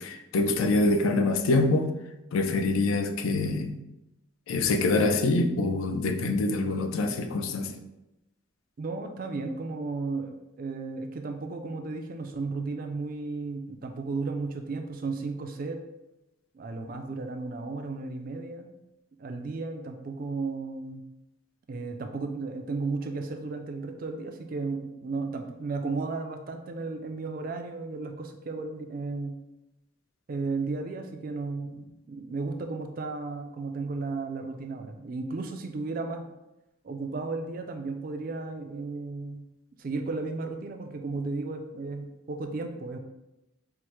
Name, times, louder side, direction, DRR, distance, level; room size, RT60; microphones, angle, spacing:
voice 1, 0.0-1.9 2.3-3.8 4.5-7.7, left 2 dB, 80° left, 6 dB, 0.4 m, -25 dB
voice 2, 8.8-15.8 16.5-18.7 19.2-21.0 21.7-29.3 30.3-36.3 36.8-39.5 39.8-43.0, right 3 dB, 45° right, 5 dB, 0.3 m, -34 dB
4.5 x 2.1 x 3.0 m, 0.94 s
head